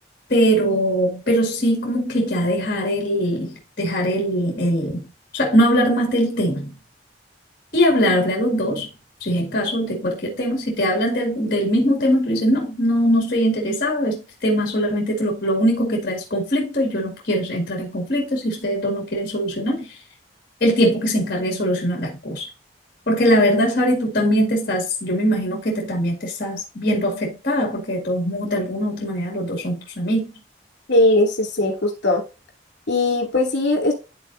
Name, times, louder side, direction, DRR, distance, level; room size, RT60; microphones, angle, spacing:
voice 1, 0.3-5.0 5.3-6.7 7.7-8.9 9.2-20.0 20.6-22.5 23.1-30.3, equal, 50° left, 2.0 m, -21 dB
voice 2, 30.9-32.2 32.9-33.9, left 2 dB, 70° left, 2.5 m, -19 dB
11.5 x 4.0 x 2.6 m
head